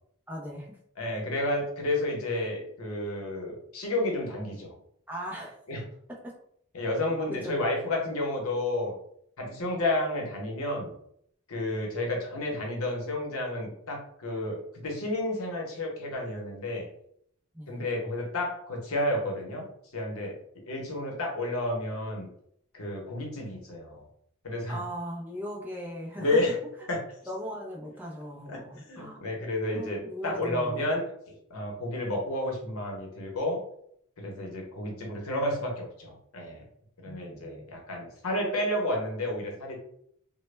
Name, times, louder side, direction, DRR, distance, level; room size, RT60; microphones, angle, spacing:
voice 1, 0.3-0.8 5.1-5.6 6.1-6.3 7.3-7.5 17.5-17.9 24.7-26.6 27.3-29.4 29.7-30.8 37.1-37.7, equal, 10° right, -3 dB, 0.4 m, -39 dB
voice 2, 1.0-4.8 5.7-5.8 6.7-8.9 9.4-10.9 11.5-16.9 17.7-19.7 19.9-20.4 20.7-22.3 22.7-24.0 24.4-24.8 26.2-26.6 26.9-27.0 28.5-31.1 31.5-33.6 34.2-36.6 37.0-39.8, left 1 dB, 80° left, 0 dB, 0.8 m, -31 dB
2.1 x 2.0 x 3.1 m, 0.69 s
head